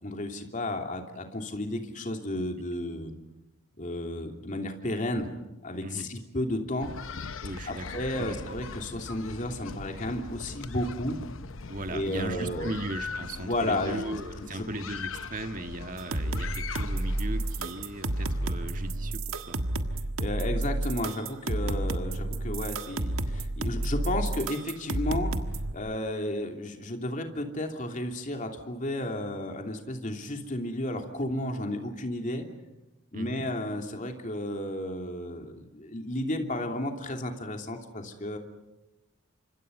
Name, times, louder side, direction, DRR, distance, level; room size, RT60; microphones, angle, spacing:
voice 1, 0.0-3.1 3.8-5.3 5.6-6.9 7.7-11.2 11.9-12.7 13.4-14.0 14.4-14.7 20.2-25.3 25.7-32.5 33.1-38.4, left 1 dB, 40° left, 4 dB, 3.0 m, -33 dB
sound 1, 6.8-18.9, left 4 dB, 80° left, 0.9 m, -41 dB
voice 2, 7.4-8.4 11.7-19.6 31.4-31.5 33.1-33.5, right 2 dB, 40° right, 7 dB, 1.7 m, -37 dB
sound 2, 16.0-25.7, right 1 dB, 90° right, 1.6 m, -31 dB
29.0 x 25.5 x 5.4 m, 0.96 s
head